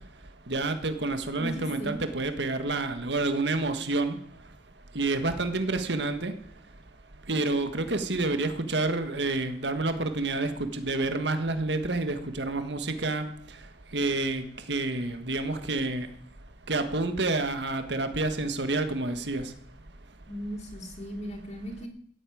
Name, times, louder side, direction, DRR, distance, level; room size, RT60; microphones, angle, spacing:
voice 1, 0.5-4.2 4.9-6.3 7.3-13.3 13.9-14.4 14.7-16.1 16.7-19.4, right 2 dB, 70° right, 8 dB, 1.7 m, -28 dB
voice 2, 1.4-2.0 20.3-21.9, equal, 40° left, 0 dB, 3.2 m, -37 dB
15.5 x 8.6 x 9.3 m, 0.63 s
head